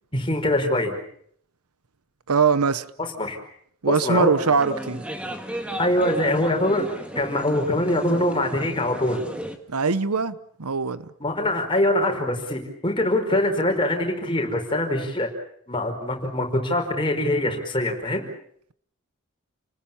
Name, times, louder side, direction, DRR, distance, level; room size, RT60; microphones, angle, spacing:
voice 1, 0.1-1.0 3.2-3.4 3.9-4.3 5.8-6.8 7.1-9.2 11.2-15.3 15.7-18.2, left 1 dB, 25° left, 5.0 m, -23 dB
voice 2, 2.3-2.9 3.8-5.0 9.7-11.1, right 5 dB, 90° right, 1.0 m, -22 dB
sound 1, 4.4-9.6, equal, 5° right, 2.1 m, -35 dB
30.0 x 20.0 x 7.3 m
head